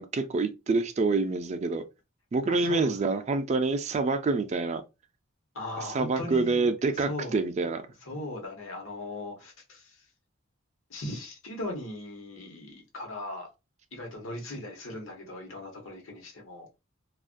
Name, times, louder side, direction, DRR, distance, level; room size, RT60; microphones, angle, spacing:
voice 1, 0.0-1.8 2.3-4.8 5.9-7.8, right 3 dB, 35° right, 0.3 m, -27 dB
voice 2, 2.5-3.1 5.5-6.6 7.0-7.4 8.0-10.0 10.9-13.5 13.9-16.7, left 1 dB, 85° left, 1.0 m, -38 dB
2.4 x 2.1 x 2.4 m
head